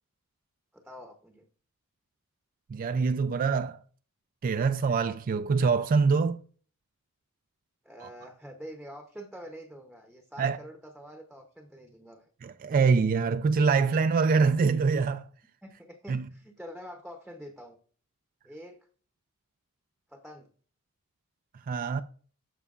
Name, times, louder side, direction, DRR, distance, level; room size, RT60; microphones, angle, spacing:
voice 1, 0.7-1.5 7.8-12.3 15.6-17.8 18.4-18.8 20.1-20.5 21.9-22.0, equal, ahead, 0.7 m, -46 dB
voice 2, 2.7-3.8 4.4-6.4 8.0-8.1 10.4-10.6 12.4-15.3 16.1-16.3 21.7-22.0, right 5 dB, 40° right, 0.3 m, -24 dB
12.0 x 5.5 x 2.4 m
head